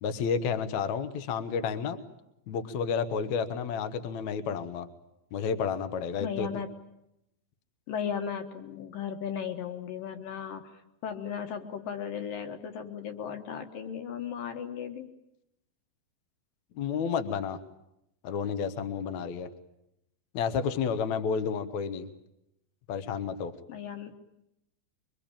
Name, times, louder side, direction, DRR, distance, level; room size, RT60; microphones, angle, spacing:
voice 1, 0.0-2.0 2.5-4.9 5.3-6.5 16.8-17.6 18.2-19.5 20.3-22.1 22.9-23.5, left 6 dB, 90° left, 11 dB, 1.6 m, -31 dB
voice 2, 6.2-6.7 7.9-15.1 23.7-24.1, left 8 dB, 65° left, 6 dB, 2.5 m, -36 dB
24.5 x 24.0 x 8.9 m, 0.83 s
omnidirectional pair, 5.3 m